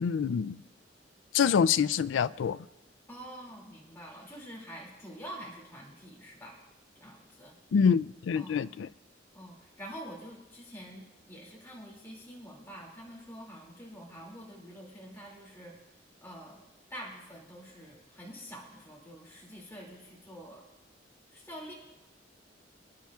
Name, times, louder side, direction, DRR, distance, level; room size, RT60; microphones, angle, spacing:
voice 1, 0.0-0.6 1.3-2.6 7.7-8.9, left 6 dB, 85° left, 0.4 m, -26 dB
voice 2, 3.1-6.6 7.0-7.6 8.3-8.7 9.3-15.7 16.2-16.6 16.9-20.6 21.3-21.7, equal, 15° left, 2.4 m, -46 dB
26.5 x 10.5 x 2.4 m
head